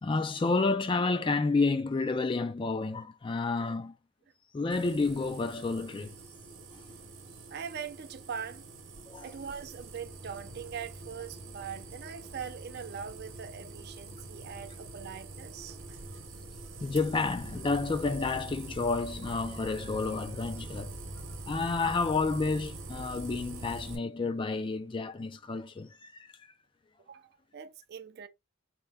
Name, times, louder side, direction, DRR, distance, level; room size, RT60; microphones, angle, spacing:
voice 1, 0.0-4.0 4.5-6.1 9.1-9.3 16.8-21.0 21.5-26.3, left 3 dB, 25° left, 0.3 m, -30 dB
sound 1, 4.7-24.0, right 2 dB, 70° right, 0.9 m, -44 dB
voice 2, 7.5-8.7 9.2-15.8 27.0-28.3, right 7 dB, 50° right, 0.4 m, -42 dB
4.3 x 2.2 x 3.4 m
head